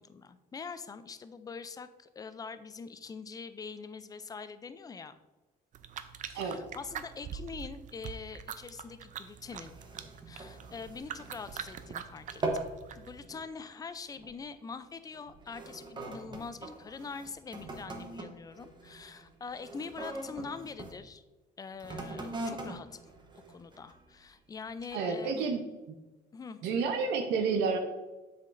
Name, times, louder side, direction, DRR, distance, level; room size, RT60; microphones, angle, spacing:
voice 1, 0.0-5.1 6.3-9.7 10.3-12.4 13.0-21.2 21.6-23.1 23.5-25.5 26.3-26.6, left 5 dB, 20° left, 12 dB, 0.4 m, -44 dB
sound 1, 5.7-13.3, right 8 dB, 50° right, 0.5 m, -44 dB
sound 2, 9.4-12.0 12.3-12.8 13.2-13.5 14.2-14.4 15.1-21.0 21.7-24.1 24.7-24.8, right 2 dB, 25° right, 1.0 m, -41 dB
voice 2, 24.9-25.6 25.9-26.0 26.6-27.8, right 5 dB, 85° right, 5 dB, 0.7 m, -30 dB
7.3 x 5.7 x 2.6 m, 1.1 s
cardioid pair, 110°, 17 cm